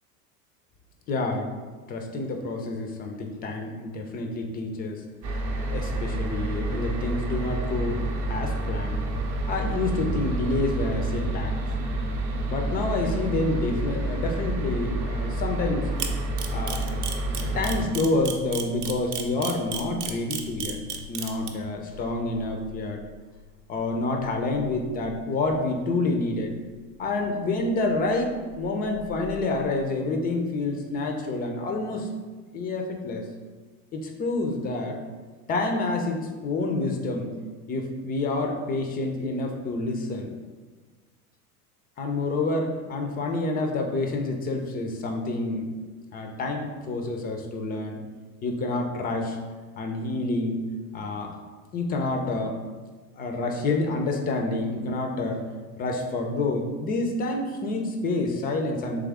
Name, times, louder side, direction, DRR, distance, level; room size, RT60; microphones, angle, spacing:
voice 1, 1.1-1.5 1.9-5.0 5.7-8.0 8.3-9.0 9.5-11.5 12.4-15.9 16.5-16.8 17.4-20.8 21.1-23.0 23.7-26.5 27.0-32.1 32.5-33.2 33.9-35.0 35.5-37.3 37.7-40.3 42.0-45.7 46.1-48.0 48.4-49.4 49.8-50.6 50.9-51.3 51.7-52.6 53.1-55.4 55.8-59.0, left 2 dB, 20° left, 3 dB, 0.4 m, -28 dB
sound 1, 5.2-17.9, right 1 dB, 40° right, 0.7 m, -29 dB
Camera, 16.0-21.5, right 8 dB, 75° right, 0.7 m, -32 dB
sound 2, 17.8-29.6, left 5 dB, 90° left, 0.8 m, -47 dB
3.6 x 3.2 x 3.4 m, 1.4 s
hypercardioid pair, 90°, 46 cm